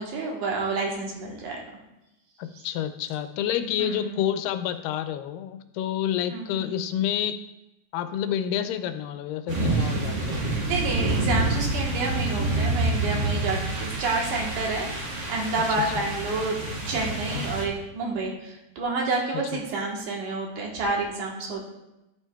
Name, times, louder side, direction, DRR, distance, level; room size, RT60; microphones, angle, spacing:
voice 1, 0.0-1.6 3.8-4.2 6.3-6.7 10.7-21.6, right 3 dB, 70° right, -1 dB, 2.7 m, -29 dB
voice 2, 2.4-7.3 7.9-10.4 16.0-16.1 17.3-17.5 19.3-19.6, left 10 dB, 90° left, 9 dB, 2.3 m, -29 dB
sound 1, 9.5-17.7, right 2 dB, 50° right, 1.4 m, -27 dB
11.5 x 7.2 x 2.3 m, 0.92 s
omnidirectional pair, 3.9 m